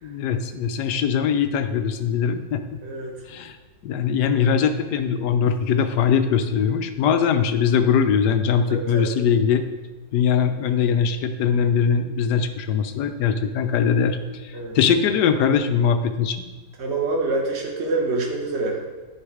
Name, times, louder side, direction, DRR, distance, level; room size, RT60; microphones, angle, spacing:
voice 1, 0.0-2.8 3.3-3.6 3.8-9.6 10.1-16.4, left 7 dB, 85° left, 8 dB, 1.3 m, -21 dB
voice 2, 2.8-3.1 8.7-9.1 14.5-14.7 16.8-18.8, right 3 dB, 45° right, 0 dB, 1.6 m, -26 dB
10.0 x 5.4 x 4.9 m, 1.3 s
omnidirectional pair, 1.7 m